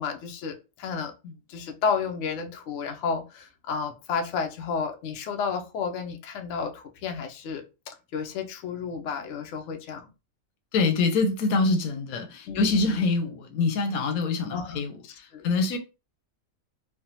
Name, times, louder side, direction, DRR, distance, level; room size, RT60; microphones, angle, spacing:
voice 1, 0.0-1.1 1.5-10.1 12.5-13.0 14.5-14.8 15.3-15.5, left 5 dB, 65° left, 0.9 m, -32 dB
voice 2, 10.7-15.8, left 3 dB, 90° left, 1.1 m, -25 dB
3.3 x 2.1 x 2.7 m
omnidirectional pair, 1.5 m